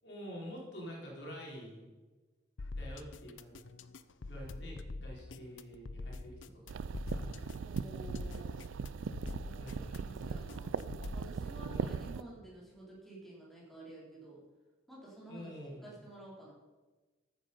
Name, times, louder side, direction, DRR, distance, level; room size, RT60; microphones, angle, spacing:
voice 1, 0.0-1.9 2.7-3.5 4.2-6.6 7.1-7.3 9.6-10.0 11.7-12.1 15.3-15.9, equal, 60° left, -2 dB, 4.0 m, -47 dB
sound 1, 2.6-11.3, left 2 dB, 80° left, 0.6 m, -45 dB
sound 2, 6.7-12.2, right 5 dB, 85° right, 0.4 m, -39 dB
voice 2, 7.6-8.7 9.4-10.7 11.1-14.4 14.9-15.5 15.8-16.5, right 2 dB, ahead, -6 dB, 3.9 m, -51 dB
14.0 x 9.0 x 5.4 m, 1.3 s
head